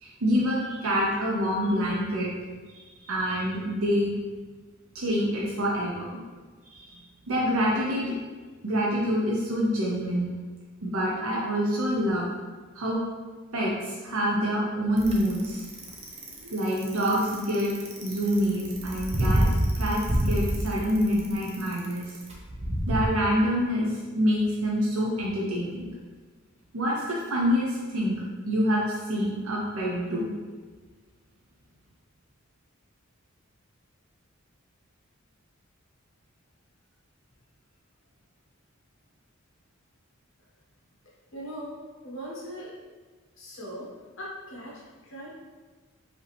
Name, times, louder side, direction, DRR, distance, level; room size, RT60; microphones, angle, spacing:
voice 1, 0.0-2.3 2.7-4.2 4.9-6.1 6.7-7.0 7.3-8.1 8.6-10.3 10.8-12.3 12.7-13.0 13.5-15.6 16.4-19.4 19.8-22.1 22.9-25.9 26.7-30.3, equal, 80° right, -4 dB, 0.7 m, -26 dB
Bicycle, 15.0-23.1, right 1 dB, 30° right, 0.7 m, -27 dB
voice 2, 41.3-42.7 43.4-43.9 44.2-45.4, equal, 65° left, -5 dB, 1.3 m, -40 dB
5.0 x 2.8 x 3.4 m, 1.4 s
head